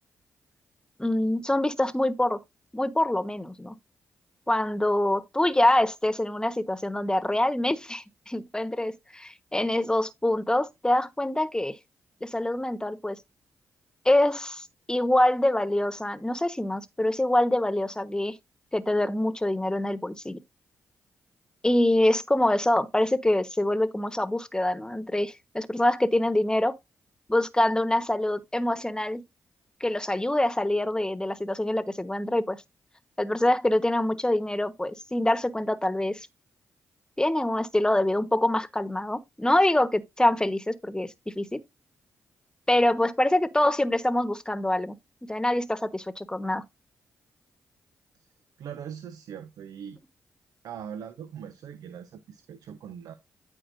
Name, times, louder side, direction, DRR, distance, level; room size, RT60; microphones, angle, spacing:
voice 1, 1.0-2.4 2.7-3.7 4.5-11.8 12.2-13.2 14.0-18.4 18.7-20.4 21.6-26.7 27.3-29.2 29.8-32.6 33.2-36.3 37.2-41.6 42.7-44.9 45.2-46.6, left 1 dB, 10° left, 1.2 m, -25 dB
voice 2, 48.6-50.0 50.6-53.1, right 8 dB, 75° right, 0.8 m, -41 dB
13.5 x 4.6 x 2.6 m
hypercardioid pair, 40°, 6 cm